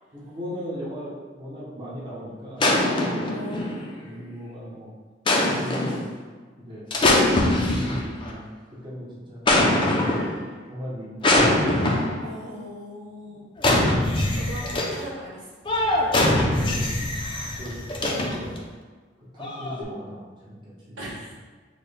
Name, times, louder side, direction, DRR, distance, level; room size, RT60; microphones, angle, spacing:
voice 1, 0.1-2.8 4.0-4.9 5.5-6.1 6.6-6.9 7.6-10.2 10.7-11.7 16.1-16.9 17.6-18.6 19.3-21.1, equal, 25° right, -7 dB, 1.0 m, -37 dB
sound 1, 2.6-4.0 5.3-6.1 6.9-8.3 9.5-10.4 11.2-12.3 13.6-15.0 15.6-18.6 19.4-19.8, left 1 dB, 25° left, 0.5 m, -22 dB
voice 2, 3.2-3.6 12.2-13.6 14.3-15.4 16.0-16.2 18.0-18.1 21.0-21.3, equal, 90° right, -5 dB, 1.2 m, -39 dB
6.2 x 2.3 x 3.3 m, 1.4 s
head